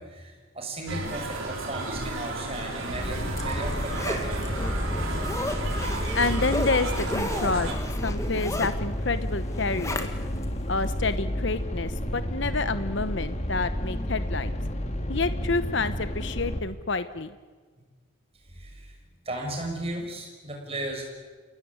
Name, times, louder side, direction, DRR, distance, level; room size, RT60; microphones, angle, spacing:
voice 1, 0.0-4.7 18.5-18.9 19.2-21.0, right 1 dB, 30° right, 1 dB, 6.4 m, -35 dB
sound 1, 0.9-7.7, right 2 dB, 75° right, 4.3 m, -33 dB
sound 2, 2.9-16.6, equal, 35° left, 2.1 m, -31 dB
Zipper (clothing), 2.9-10.5 10.9-11.0, left 1 dB, 15° left, 1.8 m, -35 dB
voice 2, 6.1-7.7 8.0-10.1 10.7-14.6 15.1-17.3, left 3 dB, 60° left, 12 dB, 1.0 m, -28 dB
28.5 x 18.0 x 9.8 m, 1.4 s
head